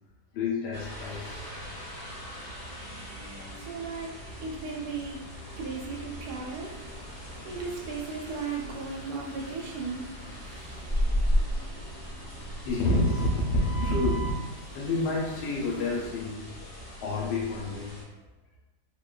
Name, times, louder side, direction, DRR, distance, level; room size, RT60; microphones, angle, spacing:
voice 1, 0.3-1.3 2.3-2.8 3.3-3.4 5.4-5.6 7.4-7.5 10.7-11.2 12.3-14.3 14.6-16.7 17.0-18.1, left 2 dB, 75° left, -3 dB, 1.1 m, -29 dB
sound 1, 0.7-18.0, equal, 55° left, 0.7 m, -36 dB
sound 2, 0.9-16.3, right 1 dB, 50° right, 0.6 m, -51 dB
voice 2, 3.6-4.1 4.4-5.2 5.6-6.8 7.4-10.1, right 4 dB, 70° right, -2 dB, 1.1 m, -36 dB
3.0 x 2.2 x 2.2 m, 0.99 s
omnidirectional pair, 1.8 m